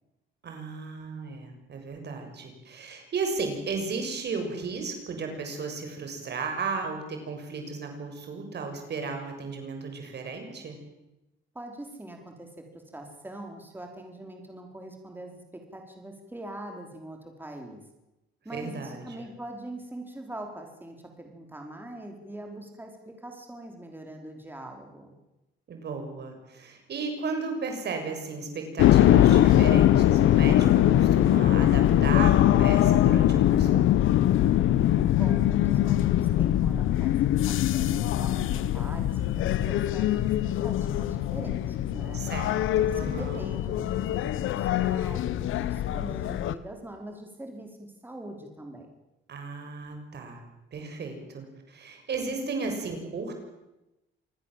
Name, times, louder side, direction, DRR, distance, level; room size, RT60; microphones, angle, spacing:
voice 1, 0.4-10.8 18.5-19.3 25.7-34.0 42.1-43.4 49.3-50.4 50.7-53.3, right 4 dB, 55° right, 4 dB, 6.8 m, -35 dB
voice 2, 11.5-17.8 18.4-25.1 35.1-37.1 37.5-42.2 42.8-49.0, right 1 dB, 10° right, 2 dB, 5.0 m, -43 dB
sound 1, 28.8-46.6, left 12 dB, 85° left, 1.2 m, -22 dB
27.0 x 20.0 x 7.8 m, 0.96 s
cardioid pair, 90°, 20 cm